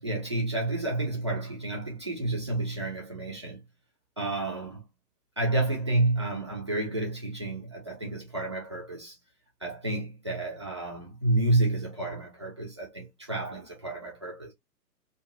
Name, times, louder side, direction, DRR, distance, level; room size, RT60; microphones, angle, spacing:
voice 1, 0.0-3.6 4.2-4.8 5.4-9.2 9.6-14.5, right 2 dB, 20° right, 0.4 m, -30 dB
2.8 x 2.3 x 2.4 m
figure-of-eight pair, 125°, 48 cm